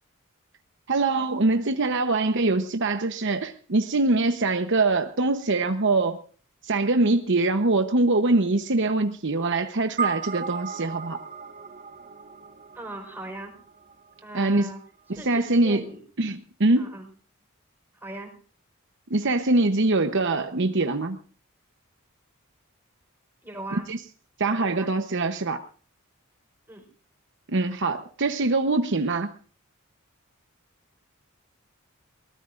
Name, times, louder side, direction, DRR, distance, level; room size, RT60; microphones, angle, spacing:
voice 1, 0.9-6.2 6.6-11.2 14.3-14.7 15.1-15.8 16.2-16.9 19.1-21.2 23.7-24.0 24.4-25.6 27.5-29.3, right 2 dB, 60° right, 7 dB, 1.0 m, -23 dB
sound 1, 10.0-14.5, right 6 dB, 45° right, 2.0 m, -35 dB
voice 2, 12.7-13.5 14.2-14.8 15.2-16.0 16.8-17.1 17.9-18.3 23.4-23.9 24.5-24.9 26.7-26.9, right 2 dB, 10° right, 2 dB, 4.6 m, -39 dB
23.0 x 19.0 x 2.6 m, 0.42 s
head